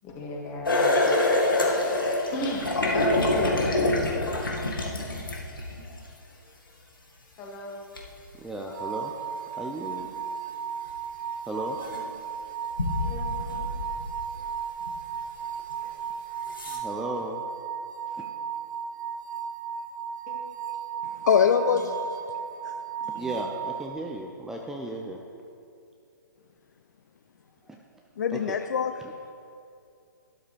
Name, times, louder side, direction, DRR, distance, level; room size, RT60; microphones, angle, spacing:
voice 1, 0.0-0.9 2.3-4.4 7.4-7.8 13.0-13.6 20.3-20.4 21.7-21.8 23.0-23.4, equal, 25° left, -2 dB, 2.2 m, -35 dB
sound 1, 0.6-5.9 8.0-8.1 10.9-11.0 11.8-12.0 12.7-14.4 14.9-15.0 15.8-15.9 16.5-16.8, left 2 dB, 80° left, 2.0 m, -26 dB
voice 2, 8.4-9.1 9.5-10.1 11.5-11.8 15.7-15.9 16.7-17.4 18.1-18.3 23.1-25.2 27.7-28.0 28.3-28.6 29.0-29.1, right 1 dB, 5° right, 0 dB, 0.5 m, -36 dB
sound 2, 8.7-23.9, right 7 dB, 60° right, 0.9 m, -35 dB
voice 3, 21.2-22.2 22.6-22.7 28.2-29.3, left 7 dB, 55° left, 8 dB, 0.5 m, -24 dB
12.5 x 12.0 x 3.4 m, 2.6 s
figure-of-eight pair, 130°, 11 cm